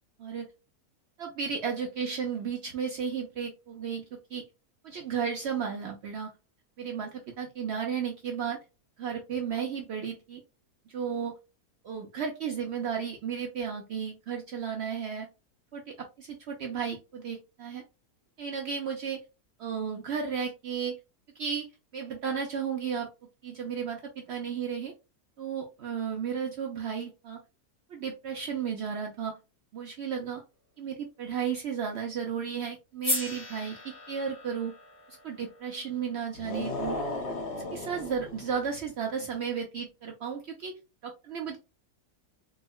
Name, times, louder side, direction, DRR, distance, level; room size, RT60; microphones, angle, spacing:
voice 1, 1.2-4.4 4.8-6.3 6.8-8.6 9.0-10.4 10.9-11.3 11.8-15.3 15.7-17.8 18.4-19.2 19.6-21.0 21.4-21.7 21.9-23.1 23.4-24.9 25.4-27.4 27.9-29.3 29.7-30.4 30.8-34.7 35.2-37.0 37.5-40.7 41.0-41.6, right 7 dB, 70° right, 1 dB, 0.6 m, -34 dB
sound 1, 33.0-37.2, left 2 dB, 25° left, 0.5 m, -37 dB
sound 2, 36.3-38.7, left 2 dB, 55° left, 0.9 m, -35 dB
3.6 x 2.1 x 2.2 m, 0.27 s
omnidirectional pair, 1.6 m